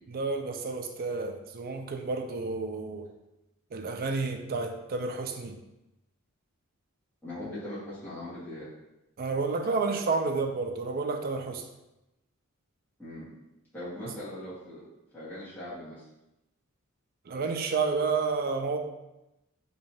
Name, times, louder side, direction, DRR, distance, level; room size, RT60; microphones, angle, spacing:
voice 1, 0.1-3.1 3.7-5.6 9.2-11.6 17.3-18.8, right 4 dB, 45° right, 5 dB, 0.4 m, -30 dB
voice 2, 7.2-8.7 13.0-13.3 13.7-14.8 15.1-16.0, left 1 dB, 10° left, -13 dB, 1.5 m, -40 dB
3.0 x 2.8 x 4.3 m, 0.93 s
head